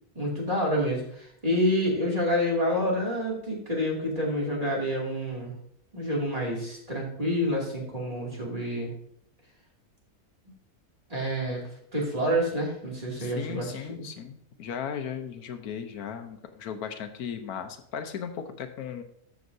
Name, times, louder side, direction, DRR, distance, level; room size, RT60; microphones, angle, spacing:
voice 1, 0.1-5.5 5.9-8.9 11.1-11.6 11.9-13.7, equal, 25° right, -3 dB, 2.6 m, -28 dB
voice 2, 13.2-19.0, left 7 dB, 80° left, 7 dB, 1.3 m, -36 dB
14.0 x 6.3 x 2.7 m, 0.68 s
omnidirectional pair, 1.6 m